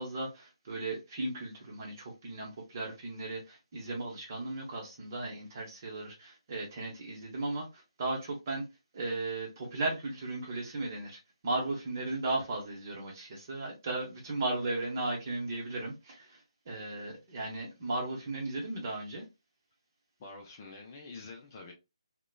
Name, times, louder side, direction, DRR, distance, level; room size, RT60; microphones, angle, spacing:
voice 1, 0.0-8.6 8.9-16.4 16.7-19.3, right 2 dB, 30° right, 0.8 m, -36 dB
voice 2, 20.2-21.7, left 3 dB, 25° left, 0.4 m, -47 dB
2.8 x 2.1 x 2.3 m
figure-of-eight pair, 150°, 3 cm